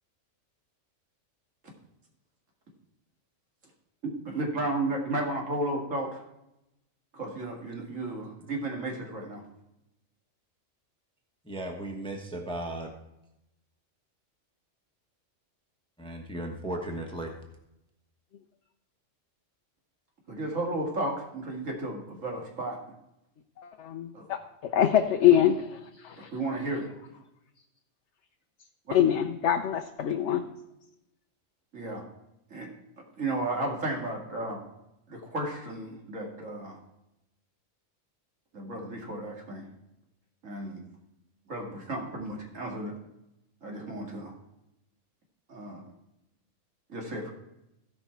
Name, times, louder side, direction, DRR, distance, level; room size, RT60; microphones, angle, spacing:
voice 1, 4.0-6.2 7.1-9.4 20.3-22.8 24.1-24.2 26.2-26.9 28.9-29.0 31.7-32.0 32.5-32.7 33.2-34.6 35.1-36.8 38.5-39.7 40.4-40.8 41.5-42.9 43.6-44.3 45.5-45.8 46.9-47.3, right 2 dB, 80° right, 0 dB, 2.3 m, -33 dB
voice 2, 11.4-12.9 16.0-17.4, right 1 dB, 5° left, 3 dB, 1.1 m, -36 dB
voice 3, 23.6-26.3 28.9-30.5, left 10 dB, 65° left, 5 dB, 1.0 m, -25 dB
16.0 x 5.5 x 4.5 m, 0.88 s
omnidirectional pair, 1.3 m